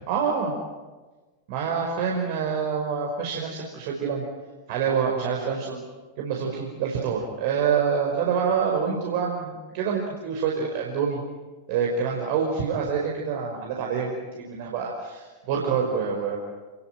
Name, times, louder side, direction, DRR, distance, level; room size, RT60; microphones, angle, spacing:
voice 1, 0.1-0.5 1.5-4.3 4.7-5.8 6.2-11.2 11.7-16.4, right 6 dB, 50° right, 0 dB, 5.3 m, -26 dB
30.0 x 21.0 x 9.1 m, 1.3 s
figure-of-eight pair, 90°, 0 cm